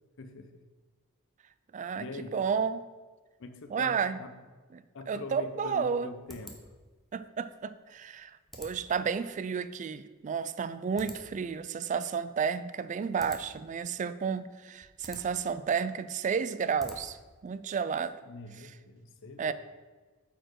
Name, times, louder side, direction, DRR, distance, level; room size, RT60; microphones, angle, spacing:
voice 1, 0.2-0.6 1.9-2.4 3.4-4.4 4.9-6.6 18.2-19.5, left 2 dB, 65° left, 8 dB, 0.7 m, -44 dB
voice 2, 1.7-2.0 2.3-2.8 3.7-4.2 4.7-4.8 5.1-6.1 7.1-8.3 8.6-17.2 17.4-18.1 19.4-19.5, right 6 dB, 35° right, 14 dB, 0.3 m, -31 dB
sound 1, 5.2-17.4, equal, ahead, 0.9 m, -52 dB
8.9 x 4.4 x 4.6 m, 1.3 s
head